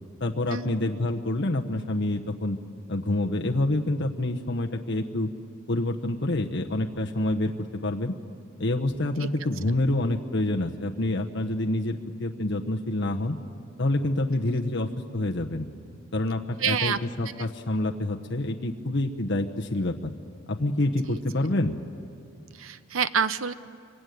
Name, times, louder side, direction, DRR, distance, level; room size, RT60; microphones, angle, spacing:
voice 1, 0.2-2.6 2.9-5.3 5.7-8.1 8.6-13.4 13.8-15.7 16.1-20.1 20.5-21.8, left 1 dB, 60° left, 1 dB, 1.1 m, -27 dB
voice 2, 16.6-17.0 21.1-21.2 22.6-23.5, right 7 dB, 85° right, 14 dB, 0.8 m, -27 dB
26.0 x 23.0 x 9.4 m, 2.4 s
head